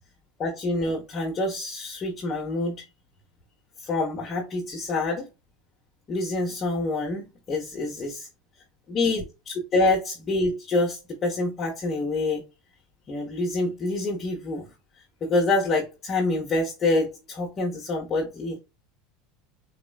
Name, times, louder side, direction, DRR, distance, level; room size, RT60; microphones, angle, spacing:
voice 1, 0.4-2.8 3.8-5.3 6.1-8.3 8.9-12.4 13.1-14.6 15.2-18.6, left 2 dB, 30° left, 1.1 m, -26 dB
4.2 x 2.9 x 2.3 m
supercardioid pair, 120°, 0 cm